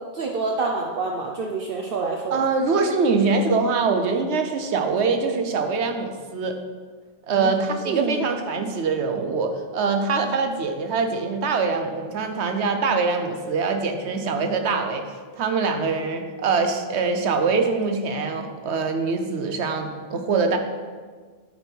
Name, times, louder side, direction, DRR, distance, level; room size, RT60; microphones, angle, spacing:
voice 1, 0.1-2.4 7.3-7.5 7.8-8.3, right 4 dB, 60° right, 0 dB, 0.9 m, -27 dB
voice 2, 2.3-6.6 7.3-20.6, right 4 dB, 80° right, 6 dB, 1.1 m, -24 dB
9.4 x 4.6 x 5.3 m, 1.5 s
omnidirectional pair, 1.1 m